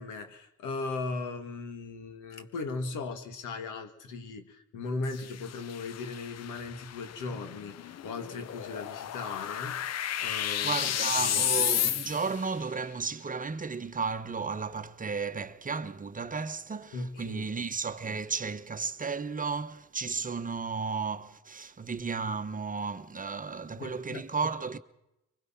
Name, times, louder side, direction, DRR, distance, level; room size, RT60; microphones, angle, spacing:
voice 1, 0.0-9.8 10.2-11.6 16.9-17.5 23.8-24.3, left 3 dB, 90° left, 2.0 m, -38 dB
sound 1, 5.0-12.5, left 10 dB, 55° left, 0.7 m, -32 dB
voice 2, 10.4-24.8, right 5 dB, 25° right, 1.0 m, -34 dB
24.5 x 21.0 x 5.8 m
cardioid pair, 90°, 30 cm